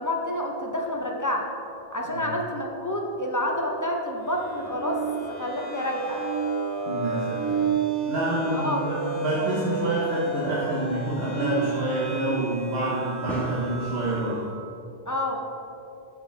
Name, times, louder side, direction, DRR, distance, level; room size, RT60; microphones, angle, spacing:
voice 1, 0.0-1.5 1.9-5.0 5.3-6.2 8.5-8.8 15.1-15.4, left 1 dB, 20° left, 0 dB, 0.8 m, -28 dB
sound 1, 1.8-1.9 3.1-3.2 4.3-5.8 6.2-6.3 7.5-7.8 8.9-9.0 10.3-12.2 12.5-12.8 13.1-13.5, right 1 dB, ahead, 1.4 m, -42 dB
sound 2, 4.3-14.5, right 5 dB, 30° right, 1.5 m, -31 dB
voice 2, 6.9-7.7 8.1-14.4, right 1 dB, 80° right, -7 dB, 1.4 m, -28 dB
13.5 x 4.9 x 3.4 m, 2.8 s
omnidirectional pair, 1.0 m